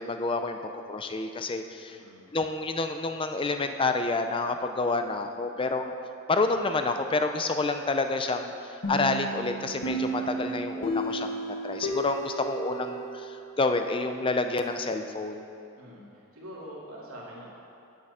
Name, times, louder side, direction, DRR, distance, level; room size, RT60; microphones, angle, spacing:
voice 1, 0.0-2.0 2.3-5.9 6.3-8.5 8.9-15.5, left 3 dB, 25° left, 7 dB, 0.5 m, -29 dB
voice 2, 1.9-2.3 10.2-10.6 15.8-16.1 16.3-17.5, equal, 80° right, -5 dB, 2.3 m, -44 dB
sound 1, 8.8-13.5, right 1 dB, 65° left, 1.3 m, -33 dB
8.9 x 7.7 x 5.5 m, 2.7 s
head